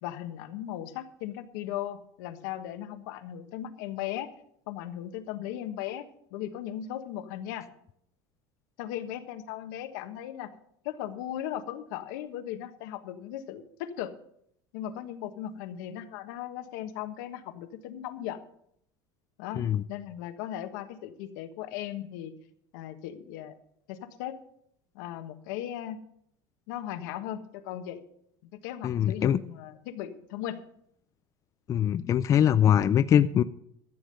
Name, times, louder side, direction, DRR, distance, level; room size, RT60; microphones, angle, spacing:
voice 1, 0.0-4.3 4.7-6.0 6.3-7.7 8.8-10.5 10.8-14.1 14.7-18.4 19.4-22.3 22.7-23.5 23.9-24.3 24.9-26.0 26.7-28.0 28.5-30.6, left 11 dB, 80° left, 8 dB, 1.3 m, -37 dB
voice 2, 28.8-29.4 31.7-33.4, left 9 dB, 30° left, 12 dB, 0.4 m, -22 dB
13.0 x 7.4 x 6.6 m, 0.70 s
supercardioid pair, 125°, 10 cm